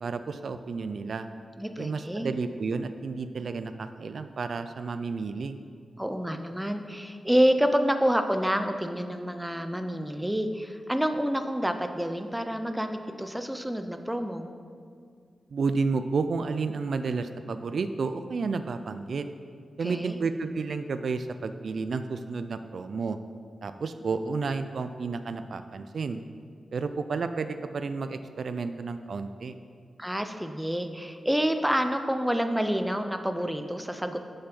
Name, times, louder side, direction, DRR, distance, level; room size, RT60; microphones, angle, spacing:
voice 1, 0.0-1.3 1.8-5.6 15.5-19.3 19.8-23.2 23.6-26.2 26.7-29.5, right 4 dB, 65° right, 10 dB, 0.3 m, -31 dB
voice 2, 1.6-2.3 6.0-14.5 19.8-20.2 30.0-34.3, equal, 5° right, 7 dB, 0.4 m, -28 dB
6.9 x 5.7 x 5.3 m, 2.2 s
wide cardioid pair, 115°, 0 cm